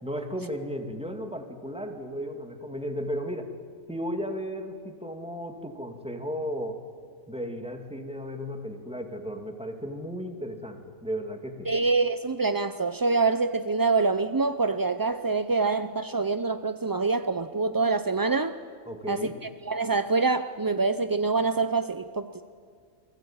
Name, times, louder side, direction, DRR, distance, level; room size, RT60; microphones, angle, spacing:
voice 1, 0.0-3.5 3.9-6.8 7.3-11.7 18.9-19.4, equal, 5° right, 4 dB, 2.3 m, -34 dB
voice 2, 11.7-18.6 19.1-19.3 19.7-22.4, right 4 dB, 30° right, 10 dB, 0.4 m, -25 dB
29.0 x 21.0 x 8.9 m, 2.1 s
omnidirectional pair, 1.3 m